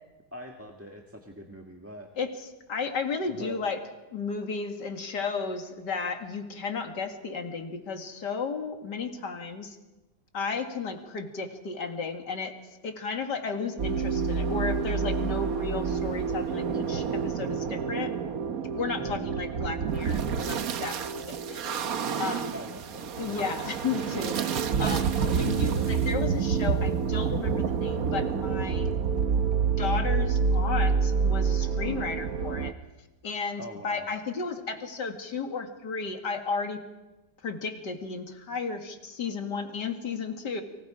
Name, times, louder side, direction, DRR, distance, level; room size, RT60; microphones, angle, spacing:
voice 1, 0.3-2.1 3.3-3.6 19.0-19.3 22.5-23.5 33.6-34.1, equal, 10° right, 2 dB, 1.6 m, -43 dB
voice 2, 2.7-3.8 4.1-9.8 10.3-12.5 12.8-18.1 18.7-21.6 22.2-22.6 23.2-24.5 24.8-28.9 29.8-32.7 33.2-36.8 37.4-40.6, left 4 dB, 90° left, 5 dB, 2.6 m, -33 dB
sound 1, 13.8-32.7, right 6 dB, 60° right, 1.4 m, -28 dB
30.0 x 24.5 x 5.0 m, 1.1 s
omnidirectional pair, 1.8 m